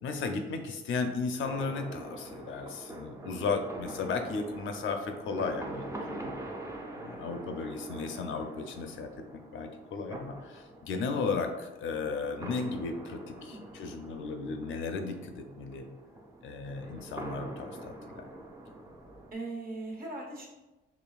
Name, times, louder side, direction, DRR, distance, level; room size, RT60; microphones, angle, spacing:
voice 1, 0.0-6.3 6.9-9.1 9.5-15.9 16.4-18.3, left 4 dB, 75° left, 6 dB, 0.5 m, -35 dB
sound 1, 1.4-19.3, right 1 dB, 15° right, 0.5 m, -44 dB
voice 2, 19.3-20.5, right 2 dB, 45° right, -1 dB, 1.1 m, -40 dB
5.0 x 3.1 x 2.3 m, 1.1 s
cardioid pair, 120°, 20 cm